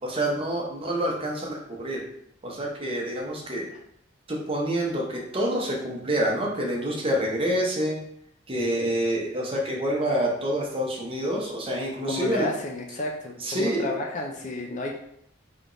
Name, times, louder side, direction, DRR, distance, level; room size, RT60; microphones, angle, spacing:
voice 1, 0.0-2.0 2.4-3.7 4.3-8.0 8.5-12.5 13.4-13.9, right 1 dB, 25° right, -1 dB, 0.8 m, -27 dB
voice 2, 12.1-15.0, left 1 dB, 40° left, 1 dB, 0.5 m, -32 dB
3.4 x 2.9 x 3.9 m, 0.73 s
head